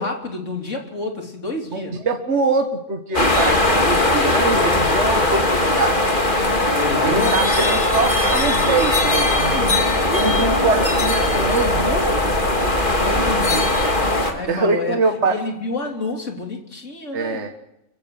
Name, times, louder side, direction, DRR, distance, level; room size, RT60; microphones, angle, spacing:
voice 1, 0.0-2.0 3.3-3.7 4.2-4.9 6.7-7.5 13.0-13.8 14.3-17.4, left 2 dB, 65° left, 3 dB, 3.6 m, -29 dB
voice 2, 1.7-6.0 7.0-9.7 10.1-12.2 14.5-15.4 17.1-17.5, right 3 dB, 55° right, 4 dB, 1.9 m, -23 dB
sound 1, 3.1-14.3, left 2 dB, 40° left, 2.7 m, -19 dB
27.0 x 15.5 x 7.7 m, 0.87 s
omnidirectional pair, 1.4 m